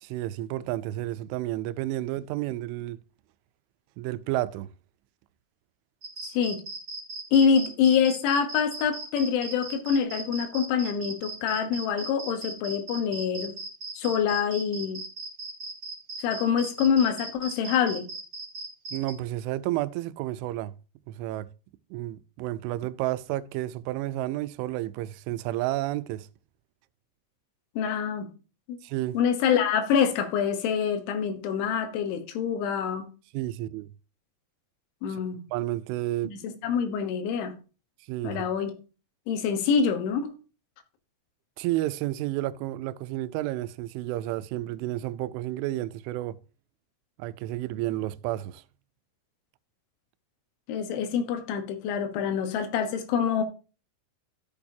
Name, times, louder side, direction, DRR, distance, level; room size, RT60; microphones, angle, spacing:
voice 1, 0.0-3.0 4.0-4.7 18.9-20.8 21.1-21.5 21.9-26.3 28.8-29.2 33.3-33.9 35.5-36.3 38.1-38.4 41.6-46.4 47.2-48.6, right 15 dB, 90° right, 3.0 m, -31 dB
sound 1, 6.0-19.1, right 3 dB, 30° right, 2.3 m, -38 dB
voice 2, 7.3-13.5 14.0-15.0 16.2-18.1 27.8-28.3 28.7-28.8 29.2-33.1 35.0-35.4 36.2-37.5 38.2-38.7 39.3-40.3 50.7-53.4, left 7 dB, 80° left, 3.5 m, -26 dB
13.5 x 6.9 x 2.7 m
omnidirectional pair, 5.4 m